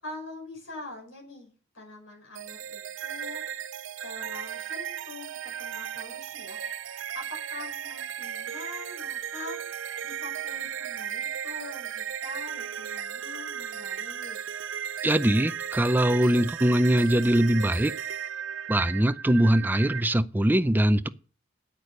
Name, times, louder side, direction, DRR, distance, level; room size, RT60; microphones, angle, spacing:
voice 1, 0.0-3.4 4.0-6.6 7.1-9.6 10.0-14.4, left 2 dB, 70° left, 5.4 m, -44 dB
sound 1, 2.4-20.0, right 9 dB, 75° right, 0.5 m, -36 dB
voice 2, 15.0-17.9 18.7-21.1, right 1 dB, 10° right, 0.5 m, -22 dB
9.0 x 8.3 x 6.4 m
head